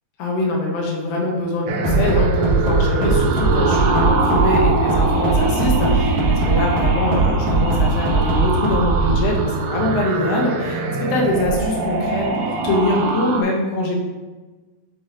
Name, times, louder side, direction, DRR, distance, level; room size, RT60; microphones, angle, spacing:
voice 1, 0.2-14.0, left 1 dB, 90° left, -1 dB, 3.1 m, -23 dB
sound 1, 1.7-13.4, right 4 dB, 85° right, 2.0 m, -23 dB
Bass drum, 1.8-9.2, right 3 dB, 45° right, 1.8 m, -19 dB
9.1 x 4.1 x 2.8 m, 1.2 s
omnidirectional pair, 4.7 m